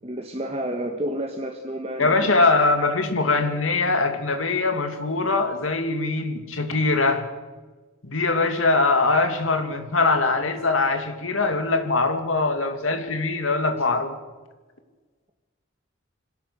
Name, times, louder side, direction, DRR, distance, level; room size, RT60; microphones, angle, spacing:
voice 1, 0.0-2.3, right 1 dB, 30° right, 1.4 m, -30 dB
voice 2, 2.0-7.3 8.0-14.2, left 3 dB, 85° left, 2.5 m, -22 dB
25.5 x 17.0 x 6.4 m
head